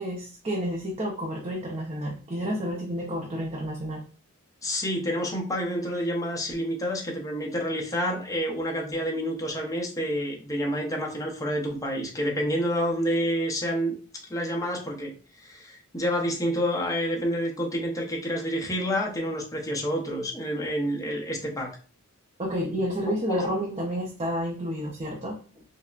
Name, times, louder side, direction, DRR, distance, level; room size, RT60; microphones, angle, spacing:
voice 1, 0.0-4.0 22.4-25.4, equal, 25° right, -2 dB, 0.5 m, -30 dB
voice 2, 4.6-14.0 14.3-21.7 23.1-23.5, equal, 15° left, -1 dB, 0.7 m, -28 dB
5.4 x 2.1 x 2.4 m, 0.39 s
head